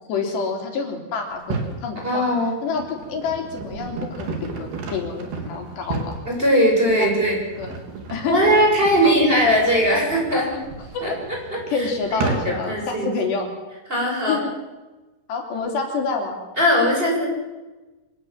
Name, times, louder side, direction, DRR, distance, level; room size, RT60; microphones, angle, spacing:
voice 1, 0.1-2.3 2.6-6.2 6.9-7.3 7.6-7.8 8.1-8.5 9.0-9.2 10.3-10.7 10.9-11.0 11.7-13.5 14.3-14.5 15.3-16.4, left 5 dB, 85° left, 2 dB, 5.9 m, -28 dB
sound 1, 1.3-1.8 2.5-12.8, right 4 dB, 70° right, 5.0 m, -33 dB
voice 2, 2.0-2.5 6.3-7.4 8.2-10.5 11.0-13.1 13.9-14.4 16.6-17.3, equal, 10° right, -1 dB, 7.0 m, -20 dB
25.5 x 18.0 x 7.6 m, 1.2 s
omnidirectional pair, 4.8 m